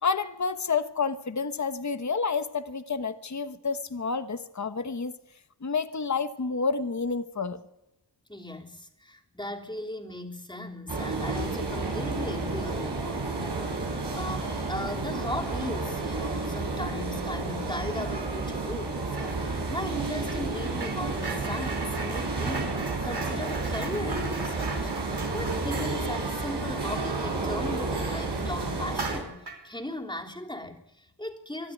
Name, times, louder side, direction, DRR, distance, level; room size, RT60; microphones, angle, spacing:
voice 1, 0.0-5.1 5.6-7.6, left 5 dB, 45° left, 10 dB, 1.2 m, -29 dB
voice 2, 8.3-31.7, left 1 dB, 10° left, 2 dB, 3.5 m, -37 dB
sound 1, 10.9-29.2, right 3 dB, 90° right, 5.6 m, -31 dB
sound 2, 19.1-19.4 19.7-27.9 28.2-28.3 28.9-29.7, right 3 dB, 75° right, 4.6 m, -39 dB
25.0 x 12.5 x 9.4 m, 0.90 s
wide cardioid pair, 55°, 40 cm